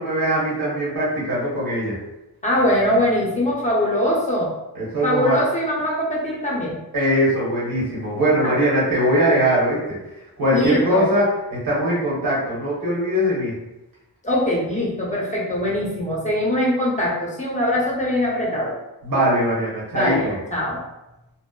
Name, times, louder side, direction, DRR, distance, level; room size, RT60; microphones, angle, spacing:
voice 1, 0.0-2.0 4.7-5.4 6.9-10.0 10.4-13.5 19.0-20.4, equal, 50° right, -7 dB, 1.2 m, -21 dB
voice 2, 2.4-4.5 5.0-6.8 10.5-11.0 14.2-18.7 19.9-20.8, left 1 dB, 15° left, -5 dB, 0.8 m, -22 dB
2.8 x 2.0 x 2.3 m, 0.95 s
cardioid pair, 75°, 42 cm